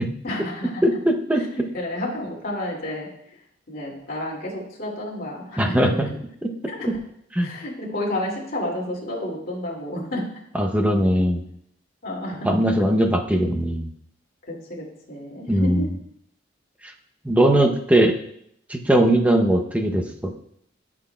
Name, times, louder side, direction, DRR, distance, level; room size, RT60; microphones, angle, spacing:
voice 1, 0.2-0.8 1.3-1.5 1.7-3.1 3.7-6.2 6.7-6.9 7.4-10.3 12.0-12.5 14.5-15.9, left 1 dB, 50° left, -3 dB, 2.3 m, -30 dB
voice 2, 0.8-1.4 5.6-6.1 6.4-6.5 7.3-7.5 10.5-11.4 12.4-13.9 15.5-15.8 16.8-16.9 17.2-18.1 18.7-20.3, right 1 dB, 10° right, 3 dB, 0.7 m, -20 dB
13.0 x 6.1 x 2.2 m, 0.71 s
head